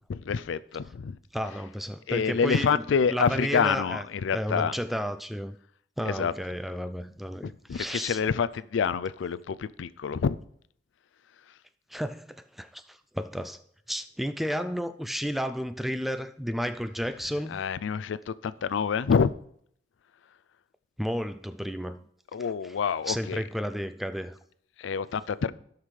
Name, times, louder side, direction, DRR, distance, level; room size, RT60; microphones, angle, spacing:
voice 1, 0.1-1.2 2.1-4.7 6.1-6.3 7.4-10.4 17.5-19.3 22.3-23.4 24.8-25.5, left 6 dB, 90° left, 0.4 m, -27 dB
voice 2, 1.3-2.8 3.1-4.0 4.3-5.6 6.0-8.2 11.9-13.6 13.9-17.6 21.0-22.0 22.6-22.8 23.1-24.4, equal, ahead, 0.3 m, -32 dB
16.0 x 6.0 x 3.2 m
head